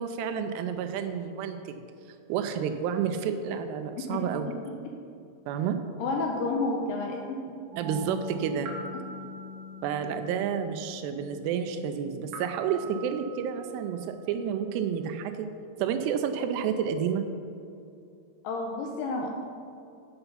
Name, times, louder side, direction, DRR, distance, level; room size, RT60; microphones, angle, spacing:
voice 1, 0.0-1.8 2.3-4.5 5.5-5.8 7.8-8.7 9.8-15.3 15.8-17.2, right 8 dB, 90° right, 7 dB, 2.7 m, -30 dB
voice 2, 4.0-4.5 4.8-4.9 6.0-7.6 18.4-19.3, left 3 dB, 85° left, 1 dB, 2.0 m, -31 dB
sound 1, 7.7-14.2, left 1 dB, 70° right, 2.2 m, -42 dB
7.9 x 6.8 x 5.6 m, 2.6 s
omnidirectional pair, 4.7 m